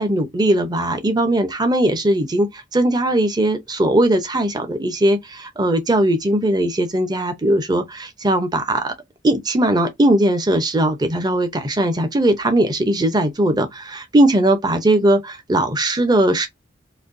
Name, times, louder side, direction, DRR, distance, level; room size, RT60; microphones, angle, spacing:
voice 1, 0.0-8.9 9.2-16.5, right 1 dB, 20° right, 0.7 m, -19 dB
4.2 x 2.7 x 2.6 m
head